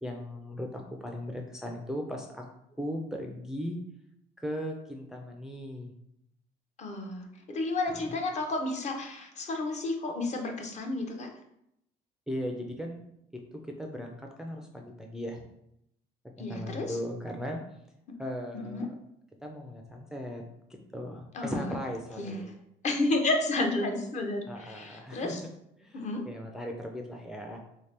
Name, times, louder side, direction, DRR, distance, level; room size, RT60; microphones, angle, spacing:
voice 1, 0.0-2.4 2.8-3.8 4.4-5.9 12.3-13.0 13.6-15.5 16.4-17.6 18.2-18.9 19.4-20.4 20.7-22.5 24.5-25.4 25.8-27.6, equal, 5° right, 1 dB, 0.3 m, -37 dB
voice 2, 6.8-11.3 16.4-17.0 18.5-18.9 21.3-21.6 22.2-22.4 22.8-25.4 25.9-26.2, left 2 dB, 45° left, 4 dB, 0.6 m, -31 dB
3.2 x 2.8 x 3.2 m, 0.78 s
cardioid pair, 110°, 17 cm